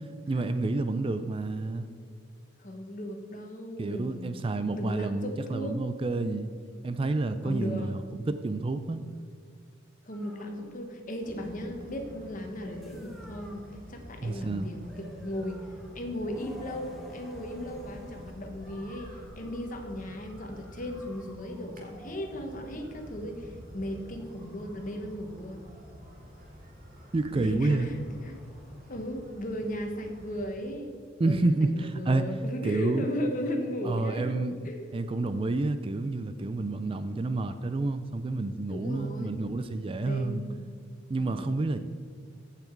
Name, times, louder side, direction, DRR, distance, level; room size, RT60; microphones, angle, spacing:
voice 1, 0.3-1.9 3.8-6.5 6.8-8.0 8.3-9.0 14.2-14.7 27.1-27.9 31.2-32.2 32.6-33.0 33.8-34.6 34.9-40.4 41.1-41.8, right 2 dB, 25° right, 11 dB, 0.4 m, -29 dB
voice 2, 2.6-4.4 4.7-5.8 7.4-8.0 10.0-15.7 15.9-25.6 27.3-28.5 28.9-31.0 31.2-34.4 34.6-34.9 38.7-39.3 40.0-40.8 41.2-41.5, equal, 40° left, 4 dB, 1.2 m, -36 dB
sound 1, 10.1-29.5, equal, ahead, 1.2 m, -55 dB
sound 2, 11.2-30.5, equal, 45° right, 1.8 m, -49 dB
15.0 x 5.8 x 4.6 m, 2.1 s
head